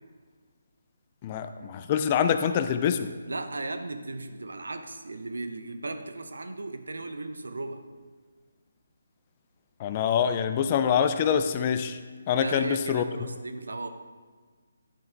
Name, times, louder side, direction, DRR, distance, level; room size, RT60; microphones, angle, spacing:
voice 1, 1.2-3.1 9.8-12.0 12.3-13.0, left 8 dB, 30° left, 10 dB, 0.4 m, -25 dB
voice 2, 3.3-7.8 12.4-13.9, right 2 dB, 70° right, 8 dB, 0.7 m, -36 dB
10.0 x 5.8 x 3.5 m, 1.5 s
figure-of-eight pair, 145°, 0 cm